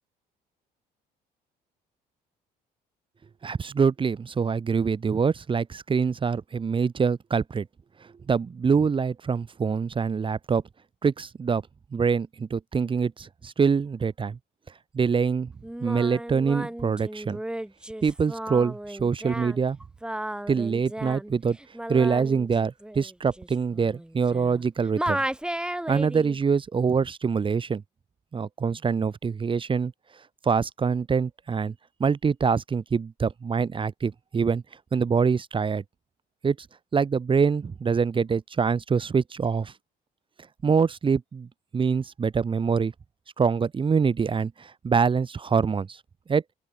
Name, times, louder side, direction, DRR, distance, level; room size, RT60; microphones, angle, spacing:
voice 1, 3.4-7.7 8.3-10.6 11.0-11.6 11.9-14.4 14.9-15.5 15.8-17.4 18.0-19.8 20.5-21.6 21.9-25.2 25.9-27.8 28.3-29.9 30.4-31.7 32.0-34.6 34.9-35.8 36.4-36.6 36.9-39.7 40.6-41.5 41.7-42.9 43.4-46.0 46.3-46.4, right 5 dB, 30° right, 2.0 m, -25 dB
Singing, 15.6-24.7 25.0-26.4, right 1 dB, 5° right, 3.0 m, -34 dB
open air
cardioid pair, 110°, 17 cm